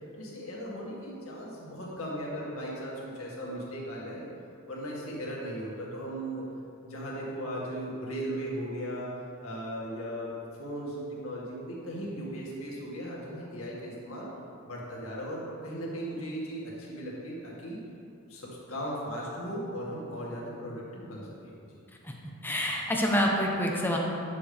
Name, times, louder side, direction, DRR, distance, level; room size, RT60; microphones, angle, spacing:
voice 1, 0.1-4.3 4.7-6.5 6.8-14.3 14.7-17.8 18.3-21.8, equal, 70° left, -5 dB, 2.2 m, -37 dB
voice 2, 22.4-24.0, equal, 10° left, -1 dB, 0.9 m, -27 dB
10.5 x 7.4 x 3.5 m, 2.5 s
head